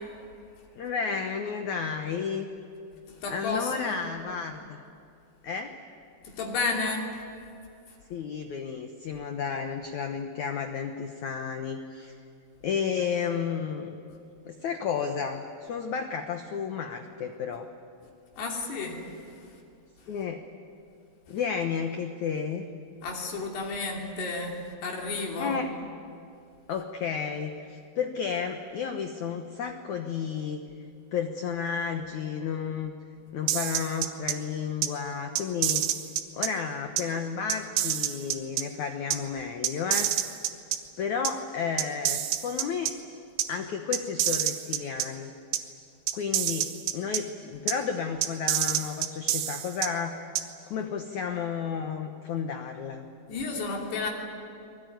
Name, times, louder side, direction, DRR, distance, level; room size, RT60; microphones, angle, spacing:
voice 1, 0.8-2.5 3.3-4.8 5.4-5.8 8.1-12.2 12.6-14.0 14.4-17.7 20.1-20.4 21.3-22.7 25.4-25.9 26.7-30.6 31.1-32.9 33.3-35.8 36.3-40.1 41.0-42.9 43.5-45.3 46.1-50.2 50.7-53.0, left 6 dB, 85° left, 6 dB, 1.6 m, -32 dB
voice 2, 3.2-4.0 6.2-7.1 18.4-19.0 23.0-24.5 24.8-25.6 53.3-54.1, left 3 dB, 65° left, 0 dB, 4.8 m, -31 dB
sound 1, 33.5-34.3 34.8-34.9 35.4-36.5 37.0-37.1 37.5-38.6 39.1-39.2 39.6-40.8 41.2-41.3 41.8-42.9 43.4-43.5 43.9-45.1 45.5-45.6 46.1-47.2 47.7-47.8 48.2-49.9 50.4-50.5, right 12 dB, 90° right, 3.6 m, -27 dB
27.0 x 21.5 x 9.3 m, 2.5 s
omnidirectional pair, 5.1 m